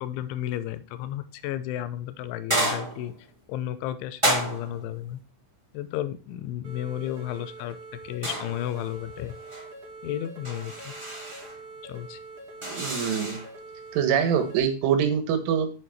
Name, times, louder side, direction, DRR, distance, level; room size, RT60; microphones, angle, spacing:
voice 1, 0.0-3.1 3.5-5.2 5.7-7.8 8.0-9.3 10.0-10.9 11.8-12.2, left 12 dB, 80° left, 12 dB, 3.0 m, -33 dB
sound 1, 2.5-3.2 4.2-4.9 8.2-8.9 9.3-9.7 10.4-11.5 12.6-13.5, right 1 dB, 10° right, 1.3 m, -30 dB
sound 2, 6.6-14.6, right 2 dB, 30° right, 3.2 m, -44 dB
voice 2, 12.7-13.4 13.9-15.7, right 7 dB, 75° right, 7 dB, 3.8 m, -24 dB
8.8 x 6.5 x 4.3 m, 0.35 s
omnidirectional pair, 5.8 m